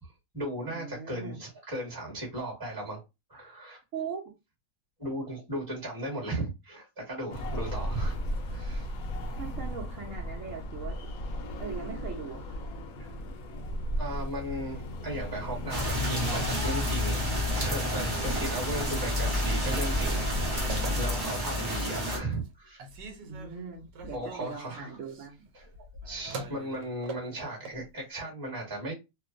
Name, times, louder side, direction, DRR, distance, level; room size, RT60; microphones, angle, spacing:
voice 1, 0.0-3.0 3.3-3.8 5.0-8.2 8.5-8.9 13.0-13.1 14.0-22.8 24.1-24.9 25.5-25.7 26.0-28.9, right 1 dB, 15° right, 1.1 m, -36 dB
voice 2, 0.7-1.4 3.9-4.2 9.4-11.0 11.6-12.6 18.0-18.1 18.7-19.2 21.9-22.3 23.2-25.4, right 6 dB, 60° right, 0.8 m, -40 dB
sound 1, 7.3-21.3, equal, 65° left, 0.9 m, -36 dB
sound 2, 15.7-22.2, left 1 dB, 30° right, 0.4 m, -29 dB
Telephone, 19.1-21.5 22.0-22.5 22.8-27.8, right 3 dB, 80° right, 1.3 m, -43 dB
2.8 x 2.1 x 2.5 m
omnidirectional pair, 1.9 m